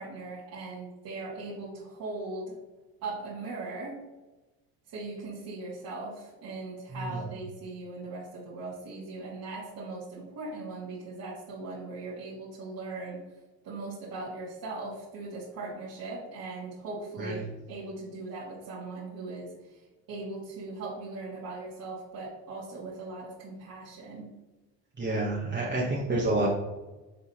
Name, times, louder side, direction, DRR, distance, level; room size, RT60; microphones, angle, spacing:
voice 1, 0.0-2.6 3.0-4.0 4.9-13.2 13.6-19.8 20.1-24.3, right 3 dB, 50° right, -9 dB, 2.4 m, -39 dB
voice 2, 25.0-26.5, right 2 dB, 25° right, -5 dB, 1.6 m, -28 dB
7.7 x 3.8 x 4.3 m, 1.1 s
supercardioid pair, 80°, 42 cm